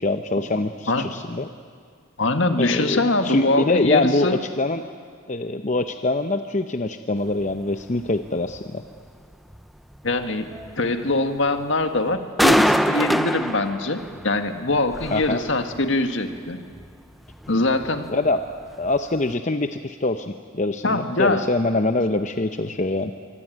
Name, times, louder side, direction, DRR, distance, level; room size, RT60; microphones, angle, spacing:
voice 1, 0.0-1.5 2.6-4.8 5.3-8.8 15.1-15.4 18.1-18.4 18.8-23.1, left 2 dB, 35° left, 8 dB, 0.7 m, -24 dB
voice 2, 2.2-4.4 10.0-10.5 10.8-16.6 17.5-18.1 20.8-21.5, left 2 dB, 65° left, 7 dB, 1.8 m, -23 dB
sound 1, 7.4-7.6 8.0-8.2 8.5-8.6 9.0-9.1 9.5-9.6 10.0-10.1 10.5-11.1 11.6-11.8 12.1-12.2 12.4-14.4 14.7-15.9 16.2-16.4 16.7-16.9 17.3-18.0 18.3-18.5 18.8-19.0 19.3-19.4, equal, ahead, 0.6 m, -24 dB
24.0 x 24.0 x 9.2 m, 2.1 s
head